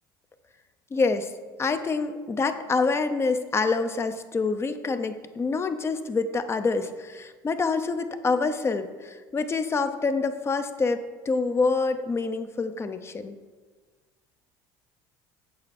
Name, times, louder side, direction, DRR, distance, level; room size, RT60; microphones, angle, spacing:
voice 1, 0.9-1.3 1.6-13.3, left 4 dB, 25° left, 9 dB, 0.8 m, -26 dB
8.6 x 6.9 x 4.3 m, 1.4 s
supercardioid pair, 95°, 10 cm